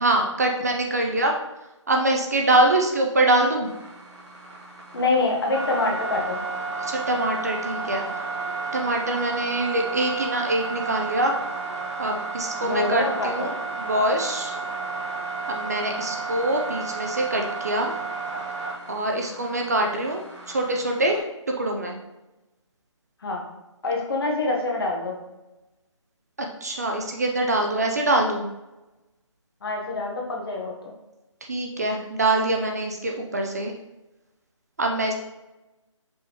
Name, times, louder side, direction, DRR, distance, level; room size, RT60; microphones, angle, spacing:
voice 1, 0.0-1.3 1.9-3.7 6.8-8.0 8.7-11.3 12.0-14.5 15.5-17.9 18.9-20.2 20.5-21.2 21.6-22.0 26.6-28.5 31.5-33.7 34.8-35.1, right 1 dB, 30° right, 2 dB, 0.4 m, -24 dB
sound 1, 3.6-21.2, right 4 dB, 60° right, 1.5 m, -32 dB
voice 2, 4.9-6.4 12.6-13.5 23.2-23.4 23.8-25.2 29.6-30.9, left 3 dB, 50° left, -1 dB, 1.1 m, -26 dB
5.1 x 3.5 x 2.9 m, 1.0 s
figure-of-eight pair, 165°, 16 cm